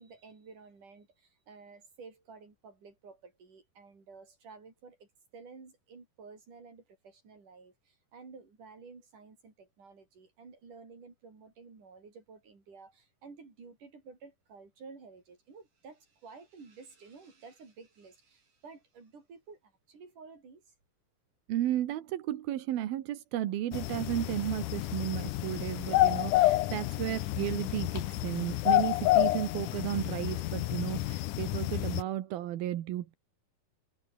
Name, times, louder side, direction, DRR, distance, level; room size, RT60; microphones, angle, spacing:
voice 1, 0.0-20.7, right 4 dB, 60° right, 7.5 m, -52 dB
voice 2, 21.5-33.1, right 13 dB, 90° right, 3.3 m, -34 dB
sound 1, 23.7-32.0, left 16 dB, 75° left, 2.1 m, -29 dB
omnidirectional pair, 4.2 m